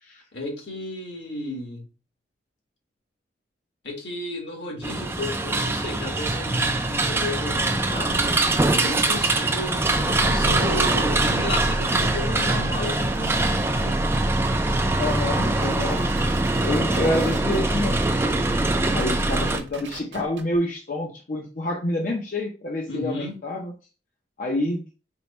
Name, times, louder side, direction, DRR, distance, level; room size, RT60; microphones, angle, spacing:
voice 1, 0.3-1.8 3.8-8.4 8.8-14.0 22.9-23.3, left 2 dB, 70° left, 1.6 m, -33 dB
sound 1, 4.8-19.6, right 2 dB, 15° right, 0.4 m, -23 dB
sound 2, 13.1-20.6, right 2 dB, 70° right, 0.9 m, -41 dB
voice 2, 15.0-16.3 16.6-18.0 18.9-23.7 24.4-24.8, left 1 dB, 45° left, 0.6 m, -27 dB
4.5 x 2.2 x 4.1 m
head